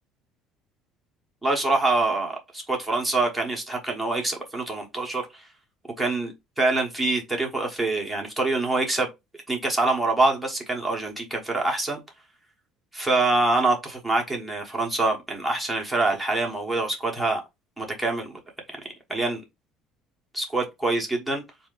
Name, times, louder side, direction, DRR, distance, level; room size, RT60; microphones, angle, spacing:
voice 1, 1.4-5.4 6.0-9.1 9.5-12.0 12.9-17.4 17.8-18.4 19.1-19.4 20.3-21.4, right 2 dB, 5° right, 1.2 m, -25 dB
4.2 x 2.7 x 3.8 m
cardioid pair, 145°, 0 cm